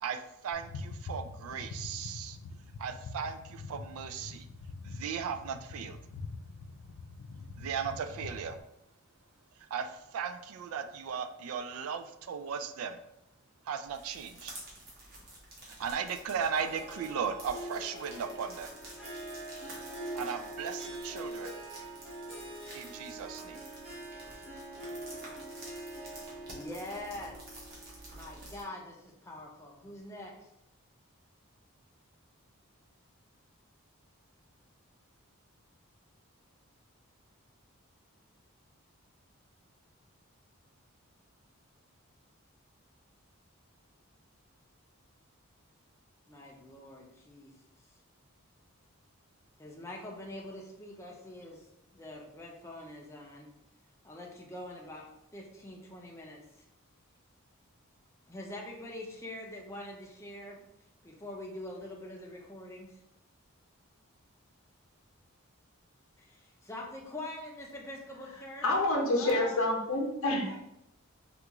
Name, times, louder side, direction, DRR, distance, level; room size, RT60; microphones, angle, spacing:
voice 1, 0.0-2.4 2.8-4.5 4.8-6.0 7.6-8.6 9.7-13.0 13.7-14.5 15.7-18.7 20.2-21.5 22.7-23.6, right 7 dB, 75° right, 8 dB, 0.3 m, -37 dB
sound 1, 0.5-8.6, left 3 dB, 90° left, 0.3 m, -44 dB
sound 2, 13.8-28.6, right 1 dB, 45° right, 0.9 m, -51 dB
Harp, 16.5-28.7, right 1 dB, 5° right, 0.9 m, -44 dB
voice 2, 26.5-27.3 28.1-30.5 46.3-47.5 49.6-51.7 51.9-53.5 54.0-56.7 58.3-60.6 61.0-63.0 66.2-68.6 69.0-69.6, left 1 dB, 15° left, -1 dB, 0.5 m, -44 dB
voice 3, 68.6-70.6, left 2 dB, 70° left, 0 dB, 0.7 m, -28 dB
3.5 x 2.4 x 2.9 m, 0.83 s
head